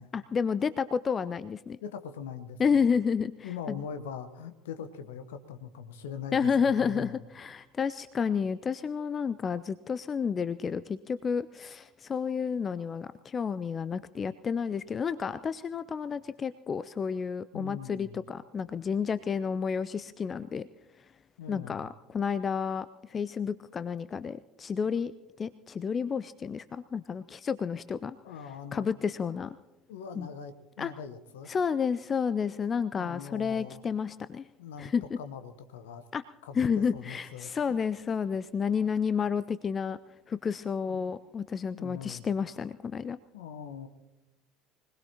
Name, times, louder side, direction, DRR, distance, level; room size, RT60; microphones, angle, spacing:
voice 1, 0.1-1.8 2.6-3.8 6.3-20.7 21.5-25.1 25.4-28.2 28.7-29.6 30.2-30.3 30.8-30.9 31.5-34.5 34.8-35.0 36.1-36.2 36.5-40.0 40.3-43.2, left 6 dB, 30° left, 15 dB, 0.4 m, -30 dB
voice 2, 1.8-2.8 3.4-6.5 6.8-7.2 17.5-18.2 21.4-21.8 28.2-28.9 29.9-31.5 33.0-33.8 34.6-36.0 36.4-37.8 40.9-41.0 41.7-42.3 43.3-43.9, left 7 dB, 70° left, 10 dB, 1.1 m, -42 dB
25.0 x 19.5 x 2.9 m, 1.1 s
figure-of-eight pair, 65°, 0 cm